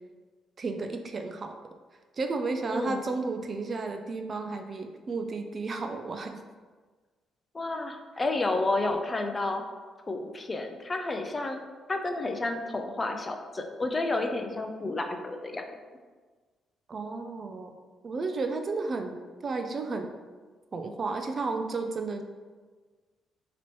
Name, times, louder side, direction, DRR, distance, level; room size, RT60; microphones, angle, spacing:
voice 1, 0.6-1.6 2.2-6.4 16.9-17.7 18.0-20.1 20.7-22.2, right 3 dB, 40° right, 6 dB, 0.4 m, -33 dB
voice 2, 2.7-3.1 7.5-9.6 10.1-11.6 11.9-15.6, left 2 dB, 25° left, 5 dB, 0.5 m, -30 dB
5.6 x 3.0 x 3.1 m, 1.4 s
cardioid pair, 90°, 0 cm